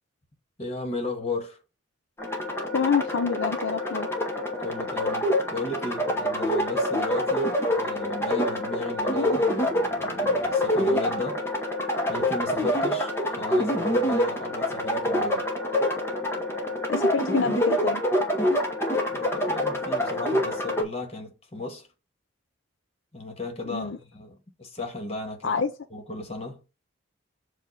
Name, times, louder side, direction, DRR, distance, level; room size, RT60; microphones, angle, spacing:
voice 1, 0.6-1.6 4.6-11.4 12.1-15.4 19.1-21.9 23.1-25.6 25.9-26.6, left 2 dB, 30° left, 1.4 m, -35 dB
sound 1, 2.2-20.8, left 1 dB, 10° left, 1.0 m, -26 dB
voice 2, 2.7-4.1 16.9-18.0 23.7-24.0 25.4-25.7, left 6 dB, 70° left, 0.5 m, -27 dB
7.4 x 2.5 x 5.6 m
head